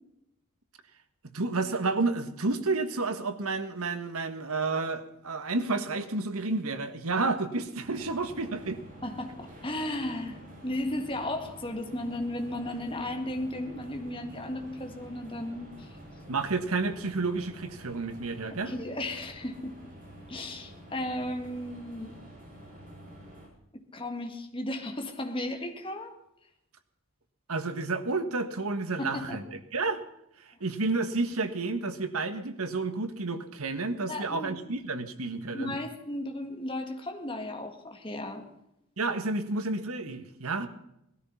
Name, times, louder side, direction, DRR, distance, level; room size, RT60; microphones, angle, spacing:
voice 1, 1.3-8.8 16.3-18.7 27.5-30.0 30.6-35.8 39.0-40.7, right 3 dB, 80° right, 9 dB, 1.5 m, -30 dB
sound 1, 7.8-23.5, right 1 dB, 40° right, 6.5 m, -48 dB
voice 2, 9.0-15.9 18.5-19.8 20.3-22.2 23.7-26.1 29.0-29.4 34.1-34.6 35.5-38.5, left 1 dB, 25° left, 4 dB, 1.9 m, -35 dB
18.5 x 13.0 x 5.7 m, 0.82 s
head